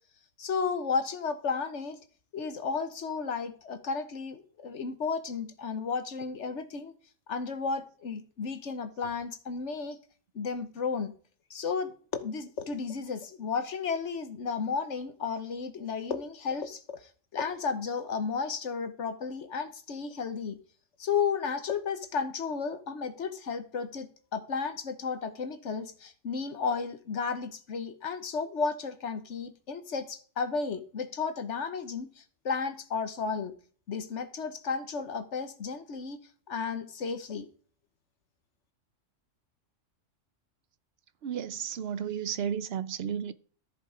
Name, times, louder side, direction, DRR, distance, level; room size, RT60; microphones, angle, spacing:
voice 1, 0.4-2.0 2.3-6.9 7.3-10.0 10.3-11.1 11.5-20.6 21.0-33.5 33.9-36.2 36.5-37.5, left 5 dB, 65° left, 1.4 m, -33 dB
voice 2, 41.2-43.3, right 8 dB, 60° right, 0.9 m, -33 dB
13.5 x 7.4 x 5.0 m
omnidirectional pair, 1.3 m